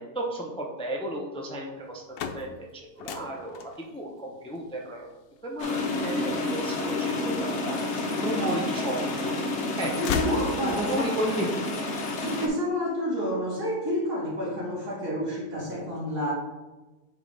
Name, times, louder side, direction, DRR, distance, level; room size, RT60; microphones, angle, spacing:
voice 1, 0.0-5.1 5.4-9.3 9.8-9.9 10.6-11.5 12.1-12.3, right 1 dB, 10° left, -1 dB, 0.3 m, -33 dB
sound 1, 1.8-7.8 8.4-9.2 9.5-11.1, left 6 dB, 75° left, 1.0 m, -37 dB
sound 2, 5.6-12.5, left 2 dB, 50° left, 1.1 m, -30 dB
voice 2, 10.0-11.1 12.2-16.3, equal, 75° right, -7 dB, 2.3 m, -29 dB
8.5 x 4.0 x 3.3 m, 1.1 s
omnidirectional pair, 1.7 m